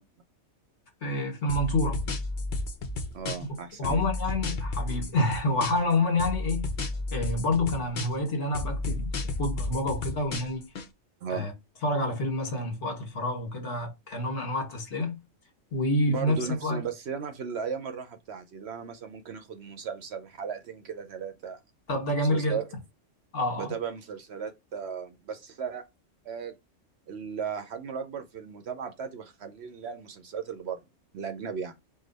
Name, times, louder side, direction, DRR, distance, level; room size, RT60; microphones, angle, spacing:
voice 1, 1.0-2.1 3.8-6.7 7.1-9.1 9.4-10.6 11.3-11.5 11.8-15.2 15.7-16.8 21.9-22.6 23.3-23.7, left 1 dB, 65° left, 1.6 m, -28 dB
sound 1, 1.5-3.6 3.8-5.9 6.2-8.3 8.5-10.9, left 2 dB, 50° left, 0.7 m, -32 dB
voice 2, 3.1-4.1 11.2-11.5 16.1-21.6 22.3-22.7 23.6-25.8 26.2-26.5 27.1-30.8 31.1-31.8, right 6 dB, 65° right, 0.9 m, -36 dB
4.9 x 2.2 x 4.0 m
omnidirectional pair, 1.3 m